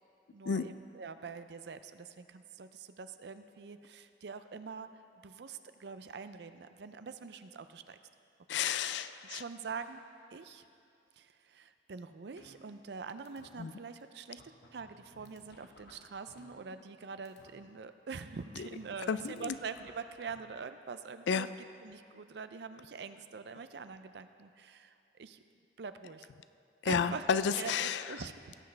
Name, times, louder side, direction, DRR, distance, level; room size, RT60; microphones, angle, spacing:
voice 1, 0.3-4.9 5.2-8.0 9.2-10.0 10.3-10.7 11.2-14.4 14.7-25.4 25.8-26.3 26.8-27.3 27.6-28.6, right 5 dB, 70° right, 10 dB, 0.5 m, -45 dB
voice 2, 8.5-9.4 13.6-13.7 18.6-18.7 19.1-19.5 21.3-21.5 26.8-28.1, left 6 dB, 80° left, 13 dB, 0.4 m, -31 dB
sound 1, 12.4-13.0 13.3-13.5 14.0-14.1 14.4-17.0 17.3-17.5 18.4-20.4, left 1 dB, 60° left, 1.2 m, -58 dB
17.5 x 7.9 x 3.4 m, 2.5 s
head